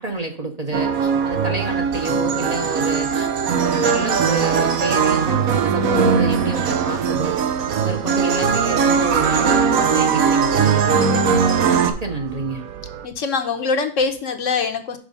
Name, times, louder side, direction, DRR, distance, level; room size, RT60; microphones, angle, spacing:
voice 1, 0.0-7.4 7.8-11.2 11.7-12.6, right 2 dB, 35° right, 3 dB, 0.9 m, -28 dB
sound 1, 0.7-11.9, right 6 dB, 85° right, 1.3 m, -19 dB
sound 2, 3.9-13.1, right 7 dB, 65° right, 0.9 m, -37 dB
voice 2, 13.0-15.0, left 4 dB, 65° left, 6 dB, 1.2 m, -23 dB
6.3 x 4.8 x 5.3 m, 0.44 s
omnidirectional pair, 1.4 m